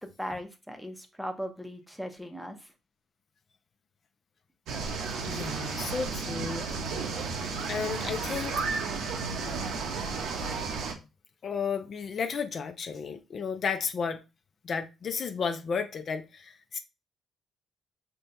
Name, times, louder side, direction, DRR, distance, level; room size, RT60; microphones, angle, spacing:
voice 1, 0.0-2.7, equal, ahead, 0.7 m, -38 dB
sound 1, 4.7-10.9, right 4 dB, 80° right, 0.7 m, -33 dB
voice 2, 5.3-6.7 7.7-8.6 11.4-14.2 14.6-16.8, left 6 dB, 50° left, 0.4 m, -33 dB
5.4 x 2.2 x 2.6 m
cardioid pair, 90°, 0 cm